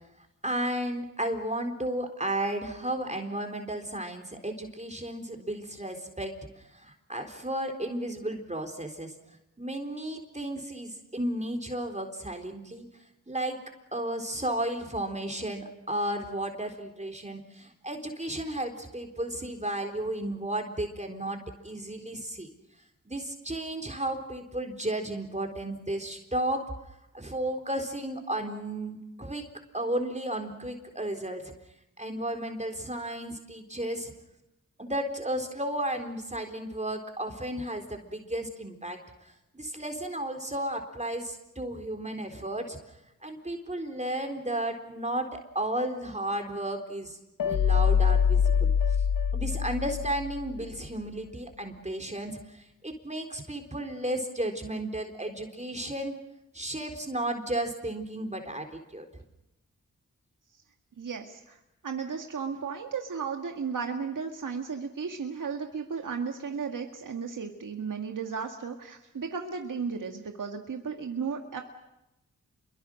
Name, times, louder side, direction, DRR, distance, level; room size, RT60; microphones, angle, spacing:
voice 1, 0.4-9.1 9.6-12.9 13.3-13.6 13.9-22.5 23.1-26.7 27.1-29.5 29.7-31.5 32.0-34.1 34.8-42.8 43.2-47.2 47.4-48.7 49.3-56.2 56.5-59.2, right 1 dB, 20° right, 4 dB, 4.0 m, -33 dB
sound 1, 47.4-50.6, left 7 dB, 90° left, 1.1 m, -24 dB
voice 2, 61.0-71.6, right 6 dB, 70° right, 3 dB, 2.0 m, -34 dB
27.5 x 23.0 x 6.5 m, 0.92 s
cardioid pair, 45°, 32 cm